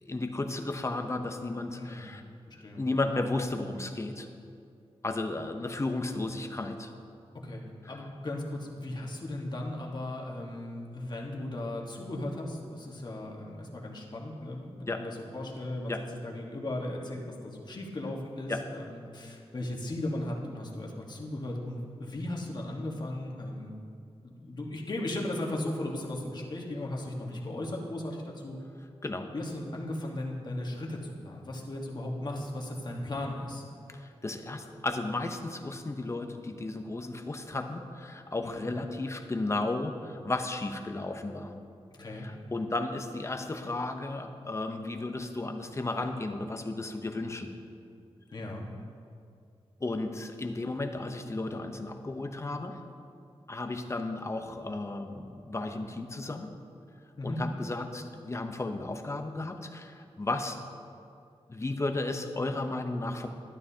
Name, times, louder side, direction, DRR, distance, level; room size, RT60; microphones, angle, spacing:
voice 1, 0.0-2.2 2.5-4.3 5.0-6.9 14.9-15.0 15.9-16.0 18.5-18.6 29.0-29.3 33.9-41.6 42.1-47.5 49.8-52.8 53.5-56.5 57.2-60.6 61.5-63.3, left 2 dB, 25° left, 6 dB, 0.7 m, -34 dB
voice 2, 2.5-2.8 7.3-23.7 24.2-28.6 29.3-33.6 38.4-38.7 42.0-42.3 48.3-48.7 57.2-57.4, left 1 dB, 45° left, -1 dB, 1.4 m, -36 dB
12.0 x 11.5 x 2.8 m, 2.4 s
wide cardioid pair, 100°, 11 cm